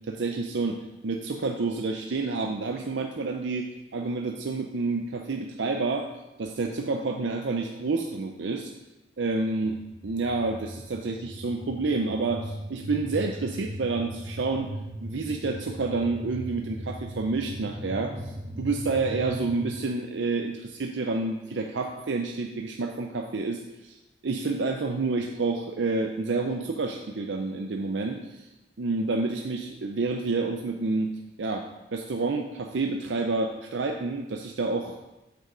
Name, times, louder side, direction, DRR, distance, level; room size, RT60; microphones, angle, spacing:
voice 1, 0.1-0.8 1.0-6.1 6.4-8.7 9.2-9.8 10.0-14.7 15.0-18.1 18.6-24.0 24.2-28.4 28.8-31.1 31.4-31.6 31.9-35.2, right 3 dB, 80° right, 3 dB, 0.6 m, -29 dB
sound 1, 9.6-19.7, right 1 dB, 55° right, 1.2 m, -38 dB
7.9 x 6.8 x 3.8 m, 0.99 s
head